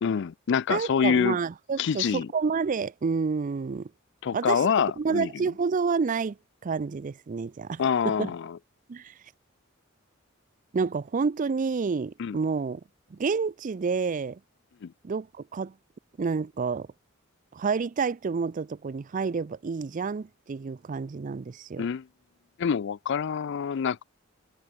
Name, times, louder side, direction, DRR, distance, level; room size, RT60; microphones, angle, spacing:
voice 1, 0.0-1.4 1.8-2.3 4.2-5.3 7.8-8.6 12.2-12.3 14.8-14.9 21.8-22.0 22.6-24.0, left 7 dB, 60° left, 0.4 m, -26 dB
voice 2, 0.7-3.9 4.3-4.7 5.0-6.4 6.6-8.3 8.9-9.1 10.7-12.8 13.1-14.4 15.0-15.7 16.2-16.9 17.5-21.9, right 5 dB, 40° right, 0.4 m, -29 dB
head